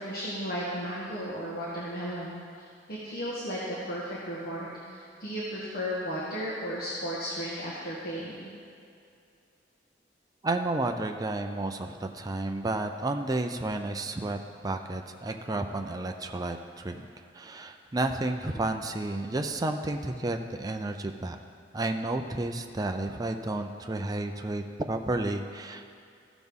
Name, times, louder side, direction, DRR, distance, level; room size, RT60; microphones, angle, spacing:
voice 1, 0.0-8.5, equal, 55° left, -7 dB, 1.5 m, -35 dB
voice 2, 10.4-17.1 17.3-21.4 21.7-26.0, right 2 dB, 20° right, 5 dB, 0.4 m, -31 dB
15.0 x 6.1 x 3.6 m, 2.4 s
head